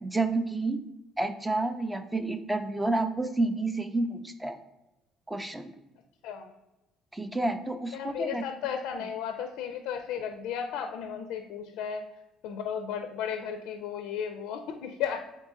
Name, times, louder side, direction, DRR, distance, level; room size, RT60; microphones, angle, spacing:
voice 1, 0.0-0.8 1.2-4.6 5.3-5.7 7.1-8.5, right 2 dB, 10° right, 8 dB, 0.4 m, -29 dB
voice 2, 7.9-12.0 12.4-15.2, left 8 dB, 80° left, 6 dB, 0.4 m, -34 dB
3.9 x 3.7 x 3.6 m, 0.98 s
cardioid pair, 105°, 0 cm